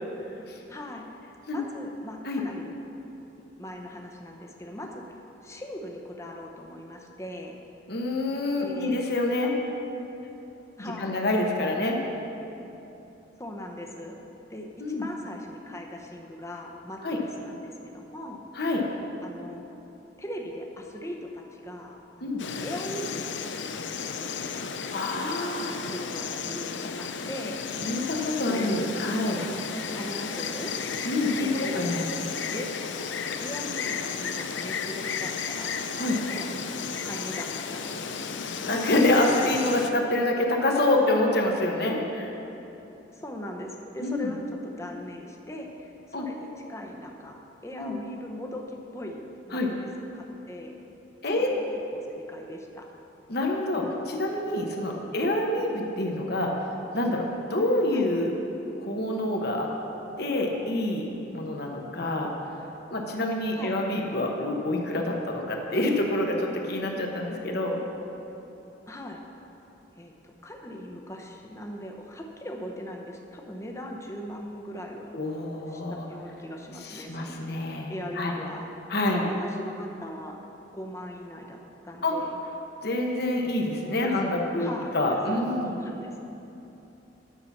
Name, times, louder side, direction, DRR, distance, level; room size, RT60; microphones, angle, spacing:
voice 1, 0.7-1.1 1.5-2.8 3.6-5.2 5.4-7.6 8.6-9.0 10.8-11.2 11.9-12.0 13.4-14.2 14.5-18.4 19.2-19.6 20.2-24.6 25.5-27.6 28.5-28.8 29.9-30.7 31.4-31.9 32.5-32.6 33.4-35.7 36.3-36.5 37.0-38.4 43.1-47.4 47.6-49.9 50.1-50.8 51.4-51.6 51.9-52.9 57.9-58.1 63.5-63.8 68.9-69.2 70.0-75.2 75.7-77.3 77.9-78.7 79.0-80.4 80.7-81.6 81.8-82.4 84.0-84.3 84.6-86.2, equal, 15° left, 1 dB, 0.8 m, -40 dB
voice 2, 7.9-9.5 10.8-12.0 14.8-15.1 17.0-17.2 18.5-18.8 22.2-22.4 24.9-25.7 27.8-29.4 31.0-32.0 36.0-36.2 38.6-42.3 44.0-44.3 46.1-46.2 47.8-48.0 49.5-49.7 51.2-51.5 53.3-56.5 56.9-58.3 58.8-59.7 60.2-62.3 62.9-67.8 75.1-76.0 76.8-78.4 78.9-79.2 82.0-82.1 82.8-85.7, left 1 dB, 55° left, 1 dB, 1.1 m, -27 dB
Insect, 22.4-39.9, left 6 dB, 75° left, 0.6 m, -33 dB
10.5 x 5.7 x 7.1 m, 3.0 s
head